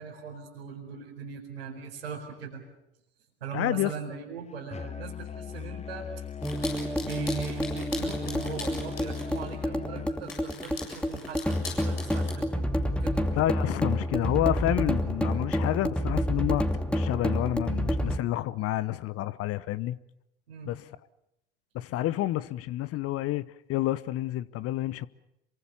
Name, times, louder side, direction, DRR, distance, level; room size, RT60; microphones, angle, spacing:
voice 1, 0.0-2.6 3.4-6.2 7.0-12.7 13.0-13.2 20.5-20.7, right 5 dB, 80° right, 4.6 m, -40 dB
voice 2, 3.5-3.9 13.4-20.0 20.6-20.8 21.7-23.4 23.7-25.1, left 14 dB, 50° left, 1.0 m, -29 dB
Musical instrument, 4.7-10.2, left 7 dB, 20° left, 1.2 m, -39 dB
sound 1, 6.4-9.5 10.1-12.3, left 4 dB, 80° left, 7.7 m, -41 dB
sound 2, 6.4-18.2, equal, 5° left, 2.6 m, -29 dB
27.5 x 24.0 x 7.2 m
figure-of-eight pair, 60°, 30 cm